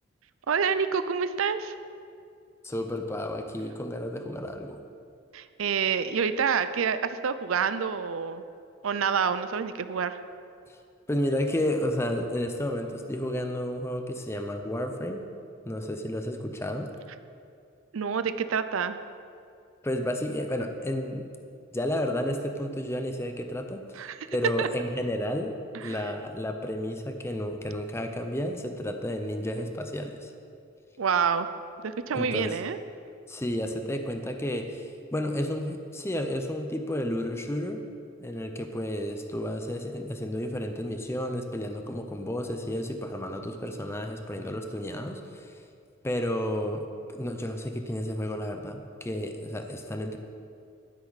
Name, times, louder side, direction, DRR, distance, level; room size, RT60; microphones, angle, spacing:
voice 1, 0.5-1.7 5.3-8.4 8.8-10.2 17.9-19.0 23.9-24.3 24.6-24.7 25.7-26.0 31.0-31.5 31.8-32.8, right 6 dB, 75° right, 12 dB, 0.5 m, -27 dB
voice 2, 2.6-4.8 11.1-15.3 15.7-16.9 19.8-21.3 21.7-23.8 24.3-30.3 32.1-32.6 33.3-37.8 38.2-45.5 46.0-50.2, left 1 dB, 15° left, 5 dB, 0.6 m, -31 dB
12.0 x 9.7 x 4.1 m, 2.4 s
head